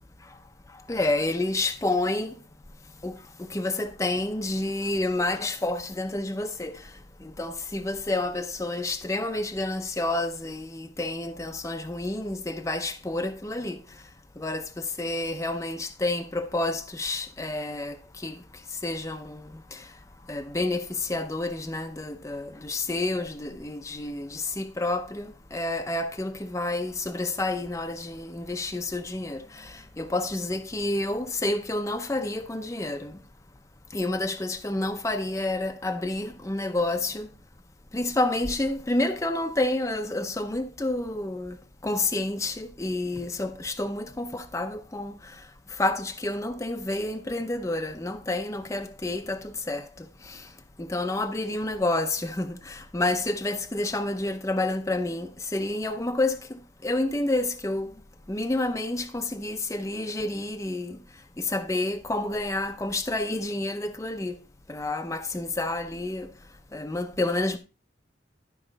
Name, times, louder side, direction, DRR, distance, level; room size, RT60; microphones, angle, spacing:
voice 1, 0.9-2.3 3.0-3.2 3.5-6.7 7.2-13.8 14.4-18.0 18.2-18.4 18.8-19.4 19.7-19.8 20.3-33.2 33.9-37.3 37.9-41.6 41.8-45.1 45.8-50.4 50.8-56.4 56.8-57.9 58.3-61.0 61.4-64.3 64.7-66.3 66.7-67.6, left 2 dB, 15° left, 0.6 m, -29 dB
12.0 x 4.9 x 3.9 m
head